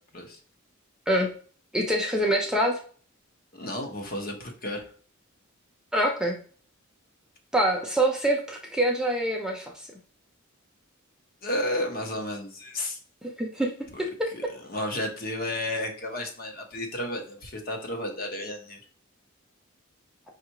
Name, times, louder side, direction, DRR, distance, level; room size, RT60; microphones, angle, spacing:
voice 1, 1.7-2.8 5.9-6.4 7.5-9.7 13.4-13.7 14.0-14.5, right 1 dB, 5° right, 0 dB, 0.5 m, -25 dB
voice 2, 3.5-4.9 11.4-13.0 13.9-14.0 14.3-18.8, left 1 dB, 45° left, 3 dB, 0.9 m, -32 dB
5.4 x 2.4 x 2.9 m, 0.43 s
head